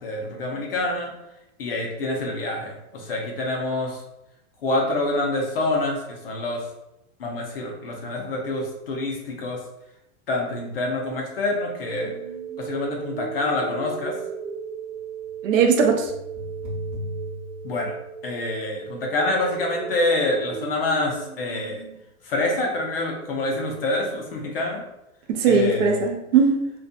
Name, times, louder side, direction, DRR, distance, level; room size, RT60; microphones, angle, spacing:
voice 1, 0.0-1.1 1.6-4.0 4.6-6.6 7.2-9.6 10.3-12.1 12.6-14.1 17.6-17.9 18.2-21.8 22.2-24.8 25.5-25.9, left 2 dB, 45° left, 0 dB, 0.4 m, -26 dB
sound 1, 11.9-21.9, right 5 dB, 25° right, 0.9 m, -35 dB
voice 2, 15.4-16.1 25.3-26.7, right 5 dB, 60° right, 4 dB, 0.5 m, -19 dB
2.5 x 2.2 x 2.5 m, 0.89 s
supercardioid pair, 180°, 43 cm